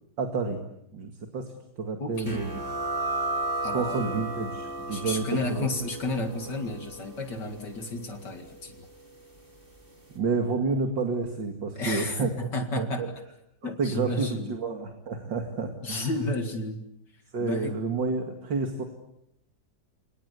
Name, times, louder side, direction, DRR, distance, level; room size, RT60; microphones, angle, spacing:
voice 1, 0.2-0.6 0.9-2.5 3.7-5.7 10.1-12.3 12.8-13.1 13.8-16.1 17.3-18.8, right 4 dB, 80° right, 4 dB, 2.9 m, -30 dB
voice 2, 2.0-2.4 3.6-4.3 4.9-8.9 11.8-13.1 13.6-14.5 15.8-16.8 17.1-17.7, left 2 dB, 70° left, 5 dB, 2.8 m, -32 dB
sound 1, 2.3-9.5, right 2 dB, 30° right, 5.8 m, -35 dB
29.5 x 24.5 x 8.3 m, 0.82 s
omnidirectional pair, 2.0 m